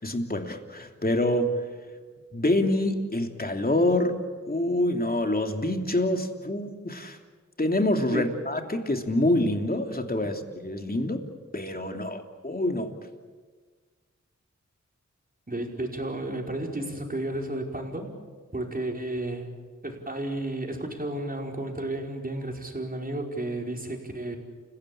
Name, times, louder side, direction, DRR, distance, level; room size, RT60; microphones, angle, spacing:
voice 1, 0.0-1.6 2.3-4.2 4.5-7.2 7.6-11.2 11.5-12.9, left 1 dB, 30° left, 4 dB, 3.1 m, -26 dB
voice 2, 15.5-18.1 18.5-19.5 19.8-24.4, right 1 dB, 30° right, 1 dB, 5.1 m, -32 dB
29.0 x 16.5 x 8.7 m, 1.5 s
cardioid pair, 55°, 30 cm